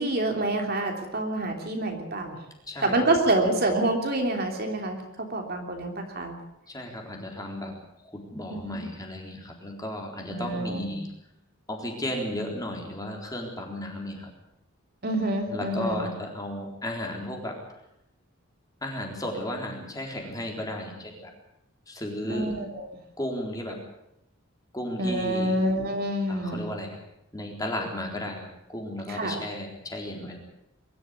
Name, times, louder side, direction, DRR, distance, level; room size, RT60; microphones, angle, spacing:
voice 1, 0.0-2.4 2.8-6.4 8.5-8.8 10.3-11.0 15.0-16.0 22.3-22.8 25.0-26.6 29.1-29.4, right 1 dB, 45° right, 3 dB, 3.1 m, -27 dB
voice 2, 2.7-3.1 6.7-7.7 8.1-11.1 11.7-14.3 15.5-17.6 18.8-21.3 21.9-22.5 23.2-23.8 24.7-25.6 26.3-27.0 27.3-30.4, left 1 dB, 15° left, 1 dB, 3.9 m, -34 dB
23.0 x 13.0 x 9.7 m, 0.83 s
head